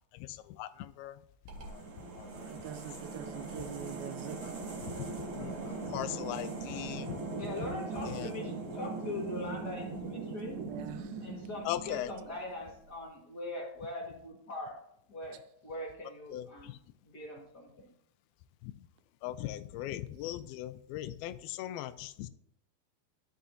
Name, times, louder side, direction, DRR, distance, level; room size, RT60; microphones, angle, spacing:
voice 1, 0.1-1.2 1.6-1.8 2.1-2.5 4.4-4.5 5.3-7.2 8.0-8.3 11.6-12.1 16.3-16.8 18.6-18.7 19.2-22.3, left 13 dB, 90° left, 2.5 m, -39 dB
sound 1, 1.5-12.6, right 3 dB, 45° right, 2.3 m, -40 dB
voice 2, 2.3-4.8 10.6-11.1, right 10 dB, 85° right, 2.4 m, -44 dB
voice 3, 7.3-10.6 11.2-14.8 15.1-16.8 17.0-17.9, left 1 dB, 40° left, 1.6 m, -42 dB
12.5 x 6.2 x 2.8 m
omnidirectional pair, 4.3 m